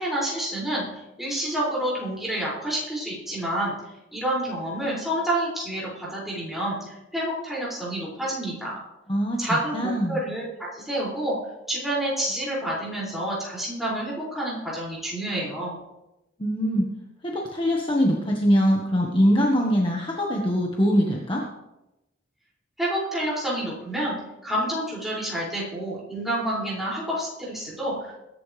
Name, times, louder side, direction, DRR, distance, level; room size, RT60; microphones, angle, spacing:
voice 1, 0.0-3.7 4.1-8.7 9.4-10.5 10.7-11.4 11.7-15.7 22.8-24.2 24.4-28.2, right 1 dB, ahead, -7 dB, 6.2 m, -28 dB
voice 2, 9.1-9.5 9.7-10.2 16.4-16.9 17.2-21.4, equal, 25° left, -1 dB, 1.5 m, -22 dB
22.0 x 11.0 x 3.4 m, 0.94 s
head